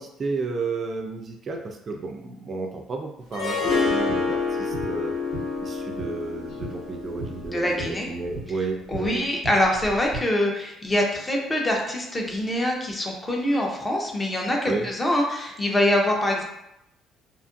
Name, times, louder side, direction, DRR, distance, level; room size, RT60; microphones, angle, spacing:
voice 1, 0.0-5.1 5.6-9.3 14.6-14.9, right 3 dB, 35° right, 3 dB, 0.3 m, -32 dB
Harp, 3.3-8.4, left 4 dB, 85° left, 0.8 m, -28 dB
sound 1, 3.7-10.2, right 2 dB, 45° left, 1.2 m, -39 dB
voice 2, 7.5-8.1 8.9-16.4, left 1 dB, 15° left, 0 dB, 0.5 m, -24 dB
2.7 x 2.4 x 2.5 m, 0.83 s
cardioid pair, 130°, 0 cm